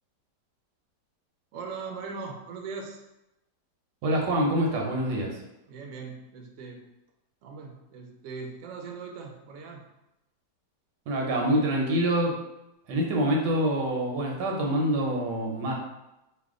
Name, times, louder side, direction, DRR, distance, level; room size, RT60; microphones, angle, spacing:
voice 1, 1.5-3.0 5.7-6.8 7.4-9.8, right 5 dB, 65° right, 2 dB, 0.8 m, -40 dB
voice 2, 4.0-5.4 11.1-12.4 12.9-15.7, right 1 dB, 85° right, -1 dB, 1.4 m, -26 dB
3.3 x 2.2 x 3.6 m, 0.92 s
omnidirectional pair, 1.8 m